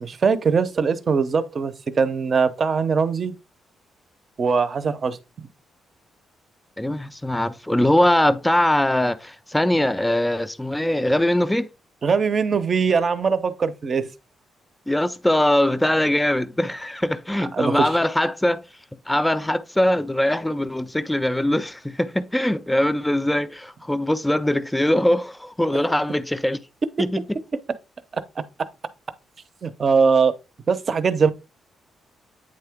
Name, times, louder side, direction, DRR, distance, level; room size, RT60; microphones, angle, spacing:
voice 1, 0.0-3.4 4.4-5.5 12.0-14.1 17.5-17.9 28.1-28.2 29.6-30.3 30.7-31.3, right 5 dB, 35° right, 0.7 m, -21 dB
voice 2, 6.8-11.7 14.9-18.6 19.1-26.6 27.0-27.2, left 1 dB, 5° left, 0.4 m, -21 dB
8.9 x 3.8 x 3.5 m
cardioid pair, 170°, 0 cm